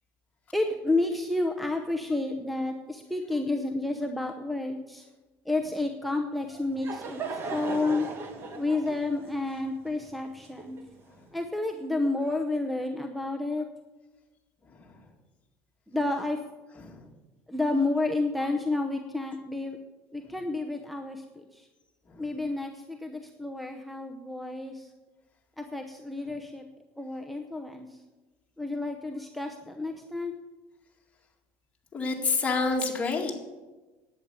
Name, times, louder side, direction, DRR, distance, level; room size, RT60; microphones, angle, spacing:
voice 1, 0.5-5.1 5.5-8.1 8.6-10.8 11.3-13.7 15.9-16.4 17.5-19.8 20.1-21.7 22.2-24.9 25.6-26.7 27.0-27.9 28.6-30.4, left 2 dB, ahead, 5 dB, 0.8 m, -30 dB
Laughter / Crowd, 6.4-11.1, right 4 dB, 40° right, 1.6 m, -38 dB
voice 2, 14.7-15.0 16.8-17.1 22.1-22.3 31.9-33.3, left 4 dB, 20° left, 1 dB, 2.0 m, -29 dB
11.0 x 8.8 x 6.8 m, 1.2 s
cardioid pair, 135°, 6 cm